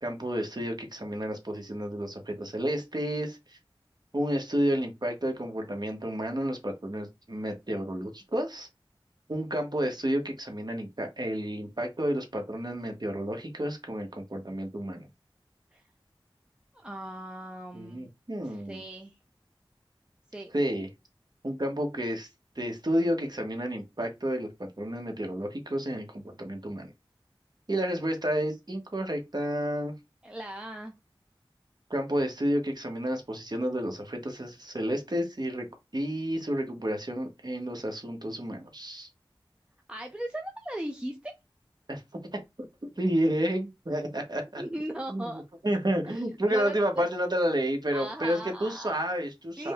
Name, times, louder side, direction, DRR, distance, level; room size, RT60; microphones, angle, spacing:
voice 1, 0.0-3.6 4.1-8.7 9.3-15.1 17.7-18.8 20.5-20.9 21.4-22.3 22.5-26.9 27.7-29.9 31.9-35.7 35.9-39.1 41.9-42.0 42.3-44.6 45.1-49.7, equal, 50° right, 1.2 m, -31 dB
voice 2, 16.7-18.1 18.4-19.2 20.3-20.5 30.2-30.9 39.9-41.3 44.6-45.4 46.1-47.1 47.9-49.1 49.6-49.7, right 1 dB, 10° right, 0.6 m, -38 dB
4.9 x 2.2 x 3.6 m
wide cardioid pair, 50°, 9 cm